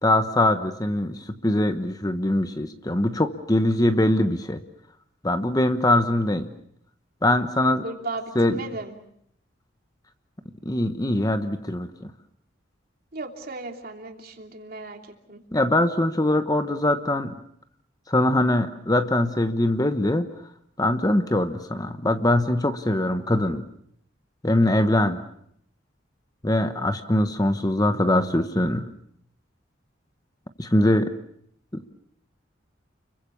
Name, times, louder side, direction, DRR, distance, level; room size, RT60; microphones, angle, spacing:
voice 1, 0.0-4.6 5.2-6.5 7.2-7.8 8.3-8.6 10.6-12.1 15.5-17.4 18.1-20.3 20.8-23.6 24.4-25.2 26.4-28.9 30.6-31.1 31.7-31.9, left 1 dB, 20° left, 9 dB, 1.1 m, -22 dB
voice 2, 7.8-8.9 13.1-15.4, right 2 dB, 50° right, 3 dB, 3.1 m, -36 dB
30.0 x 23.0 x 7.0 m, 0.70 s
head